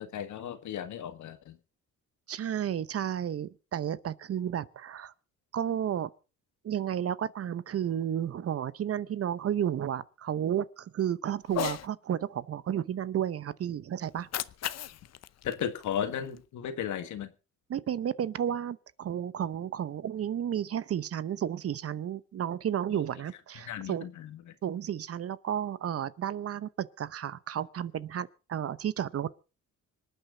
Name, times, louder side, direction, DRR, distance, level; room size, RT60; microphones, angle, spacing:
voice 1, 0.0-1.6 15.4-17.3 22.9-23.0 23.7-24.4, left 9 dB, 75° left, 1.7 m, -35 dB
voice 2, 2.3-5.1 5.5-6.1 6.6-14.3 17.7-24.1 24.6-29.3, right 9 dB, 50° right, 0.8 m, -32 dB
Cat, 11.4-11.9 14.1-16.4, left 12 dB, 60° left, 0.7 m, -37 dB
25.5 x 9.2 x 3.9 m
cardioid pair, 90°, 30 cm